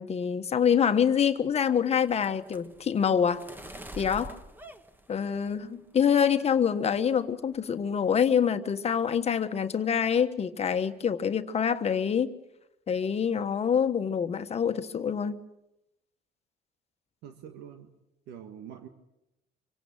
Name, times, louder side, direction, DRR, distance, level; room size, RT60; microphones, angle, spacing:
voice 1, 0.0-3.5 4.0-4.3 5.1-12.3 12.9-15.4, left 7 dB, 40° left, 1.4 m, -26 dB
sound 1, 1.4-5.8 6.2-6.7 6.9-7.2 7.5-8.1, right 1 dB, 10° right, 1.6 m, -47 dB
voice 2, 17.2-18.0 18.3-18.9, right 9 dB, 90° right, 1.7 m, -45 dB
26.0 x 17.5 x 8.9 m
cardioid pair, 110°, 17 cm